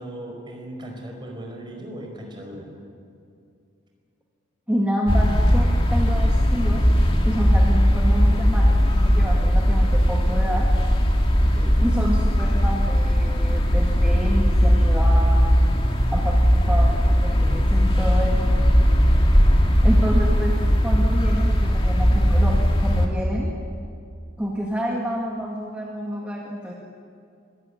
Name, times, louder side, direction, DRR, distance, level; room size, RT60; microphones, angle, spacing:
voice 1, 0.0-2.7 11.5-11.9, right 1 dB, 25° right, 1 dB, 5.1 m, -37 dB
voice 2, 4.7-6.9 7.2-10.7 11.8-15.8 16.1-18.5 19.8-23.5 24.4-26.7, equal, 5° right, -2 dB, 2.1 m, -29 dB
sound 1, 5.1-23.1, equal, 25° left, 2.2 m, -18 dB
25.0 x 17.0 x 9.8 m, 2.4 s
head